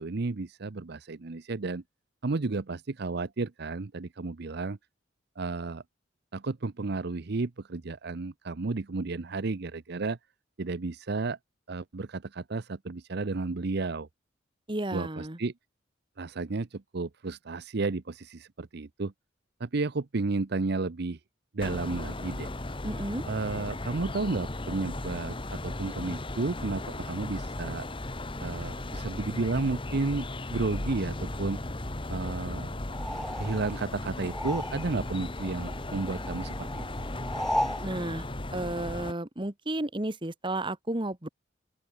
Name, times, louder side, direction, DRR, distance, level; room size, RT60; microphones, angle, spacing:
voice 1, 0.0-1.8 2.2-4.8 5.4-5.8 6.3-10.2 10.6-11.4 11.7-14.1 14.9-15.5 16.2-19.1 19.6-21.2 21.5-22.5 23.3-27.9 28.4-31.6 32.1-32.7 33.4-36.9, right 3 dB, 60° right, 0.7 m, -32 dB
voice 2, 14.7-15.4 22.8-23.2 37.8-38.2 38.5-41.3, right 1 dB, 25° right, 1.9 m, -32 dB
sound 1, 21.6-39.1, left 1 dB, 25° left, 1.6 m, -36 dB
sound 2, 32.9-35.1 35.4-37.9, equal, ahead, 0.8 m, -35 dB
open air
head